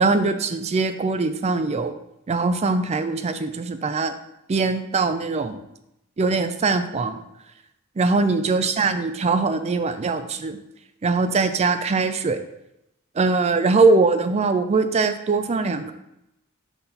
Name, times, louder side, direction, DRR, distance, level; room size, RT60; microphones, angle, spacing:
voice 1, 0.0-1.9 2.3-4.1 4.5-5.6 6.2-7.2 8.0-10.6 11.0-12.4 13.2-15.9, right 3 dB, 30° right, 9 dB, 0.4 m, -21 dB
5.7 x 4.2 x 4.0 m, 0.85 s
head